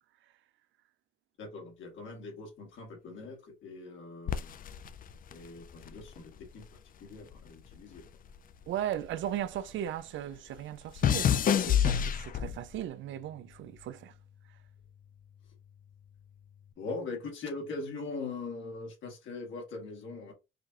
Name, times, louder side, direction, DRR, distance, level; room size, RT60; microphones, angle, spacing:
voice 1, 1.4-4.6 5.3-8.1 16.8-20.3, left 3 dB, 75° left, 1.9 m, -41 dB
sound 1, 4.3-6.8 7.0-9.7 10.0-12.8 13.5-13.9, left 9 dB, 45° left, 0.4 m, -30 dB
voice 2, 8.7-14.1, right 11 dB, 75° right, 0.4 m, -37 dB
4.8 x 2.4 x 2.7 m
cardioid pair, 90°, 20 cm